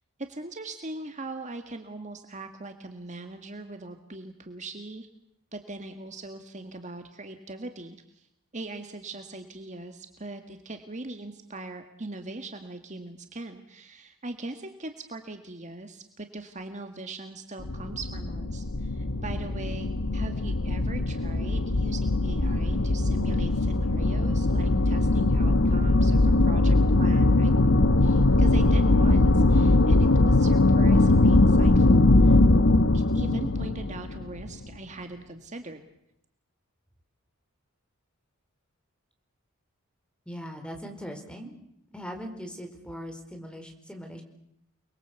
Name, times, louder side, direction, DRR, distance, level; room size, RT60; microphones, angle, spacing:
voice 1, 0.2-5.1 5.5-8.3 8.5-27.6 28.0-32.4 32.9-35.8, right 2 dB, 35° right, 6 dB, 1.9 m, -40 dB
sound 1, 17.6-34.6, left 2 dB, 65° left, 1.1 m, -21 dB
voice 2, 40.3-41.6 41.9-44.2, equal, 5° left, 4 dB, 4.6 m, -40 dB
29.5 x 22.0 x 8.3 m, 0.76 s
head